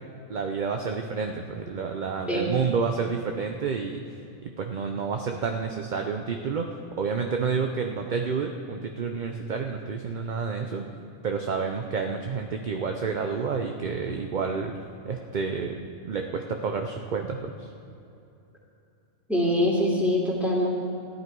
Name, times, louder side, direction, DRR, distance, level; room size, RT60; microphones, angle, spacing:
voice 1, 0.3-4.0 4.4-10.9 11.2-14.7 15.0-17.7, right 5 dB, 50° right, 4 dB, 0.7 m, -29 dB
voice 2, 19.3-20.7, left 1 dB, ahead, -5 dB, 2.6 m, -23 dB
14.5 x 10.5 x 4.6 m, 2.8 s
omnidirectional pair, 1.2 m